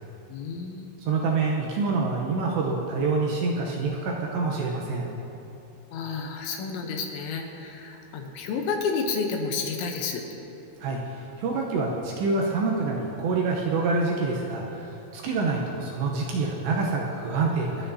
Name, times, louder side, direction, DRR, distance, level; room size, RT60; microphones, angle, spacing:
voice 1, 0.3-1.0 5.9-10.2, left 5 dB, 75° left, 3 dB, 3.0 m, -30 dB
voice 2, 1.0-5.1 10.8-11.0 11.4-17.9, right 3 dB, 75° right, -2 dB, 2.7 m, -26 dB
28.0 x 9.4 x 2.8 m, 3.0 s
omnidirectional pair, 5.8 m